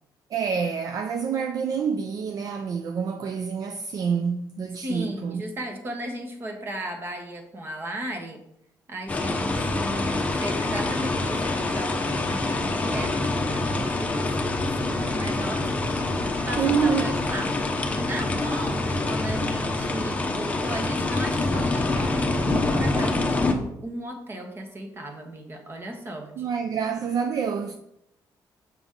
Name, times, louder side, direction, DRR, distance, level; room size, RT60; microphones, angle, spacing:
voice 1, 0.3-5.4 16.6-17.2 26.4-27.7, right 6 dB, 55° right, 0.5 m, -27 dB
voice 2, 4.8-8.4 8.9-17.5 17.9-26.5, equal, 30° right, 1.3 m, -35 dB
sound 1, 9.1-23.5, left 2 dB, 20° left, 0.8 m, -26 dB
7.1 x 5.9 x 3.8 m
cardioid pair, 145°, 8 cm